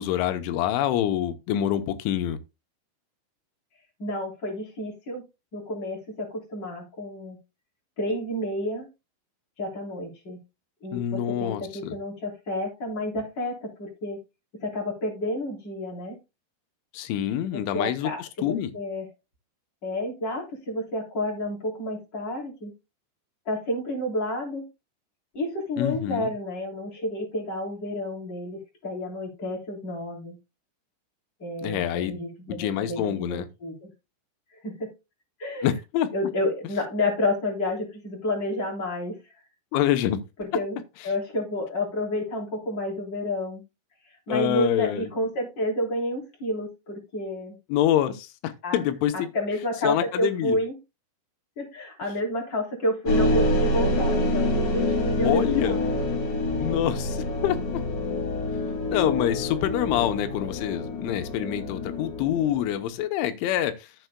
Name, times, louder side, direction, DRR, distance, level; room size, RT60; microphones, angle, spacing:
voice 1, 0.0-2.4 10.9-12.0 16.9-18.7 25.8-26.3 31.6-32.1 32.5-33.5 35.6-36.1 39.7-40.2 44.3-45.1 47.7-49.3 49.8-50.6 55.2-55.8 56.6-57.8 58.9-63.9, left 11 dB, 85° left, 3.3 m, -26 dB
voice 2, 4.0-5.2 5.5-7.4 8.0-8.9 9.6-10.4 10.8-14.2 14.6-16.2 17.4-19.1 19.8-22.7 23.5-24.6 25.3-30.3 31.4-33.9 34.6-34.9 35.4-35.7 36.1-39.2 40.4-43.6 44.3-47.5 48.6-48.9 49.1-50.7 51.6-55.9, left 1 dB, 25° left, 3.7 m, -30 dB
sound 1, 53.1-62.8, left 1 dB, 45° left, 3.4 m, -26 dB
13.5 x 7.7 x 2.2 m
omnidirectional pair, 5.3 m